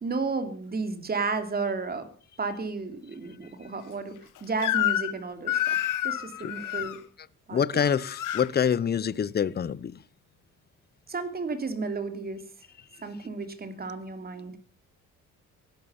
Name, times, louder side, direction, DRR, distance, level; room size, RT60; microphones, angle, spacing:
voice 1, 0.0-2.1 2.4-5.8 6.0-7.0 7.5-7.8 11.1-12.4 13.0-14.5, right 4 dB, 30° right, 2.9 m, -32 dB
Crying sobbing / Screech, 4.6-5.2 5.5-7.0 7.8-8.5, left 12 dB, 75° left, 1.5 m, -28 dB
voice 2, 7.5-9.9, left 7 dB, 30° left, 0.8 m, -26 dB
17.0 x 11.5 x 7.1 m
cardioid pair, 125°, 32 cm